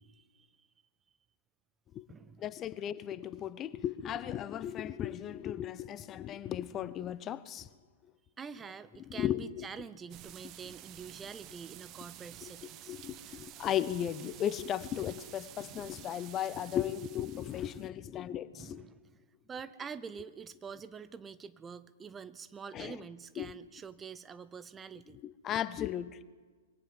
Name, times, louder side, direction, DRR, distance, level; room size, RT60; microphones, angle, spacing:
voice 1, 0.2-0.7 2.1-2.5 8.4-13.0 18.5-19.2 19.5-25.2, right 6 dB, 15° right, 15 dB, 0.8 m, -46 dB
voice 2, 2.4-7.7 9.1-9.7 12.4-12.5 12.9-18.8 22.7-23.0 23.4-23.5 25.1-26.2, left 10 dB, 25° left, 17 dB, 0.7 m, -36 dB
sound 1, 10.1-17.9, right 13 dB, 30° right, 1.1 m, -51 dB
22.5 x 17.5 x 7.5 m, 1.4 s
figure-of-eight pair, 110°, 0 cm